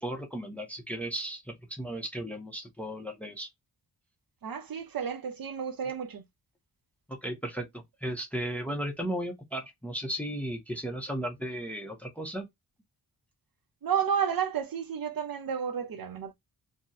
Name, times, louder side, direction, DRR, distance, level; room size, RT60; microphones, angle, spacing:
voice 1, 0.0-3.5 5.8-5.9 7.1-7.7 8.0-12.5, right 1 dB, 5° left, 0.5 m, -35 dB
voice 2, 4.4-6.2 13.8-16.3, right 8 dB, 60° right, 0.6 m, -31 dB
2.7 x 2.0 x 3.4 m
wide cardioid pair, 170°, 40 cm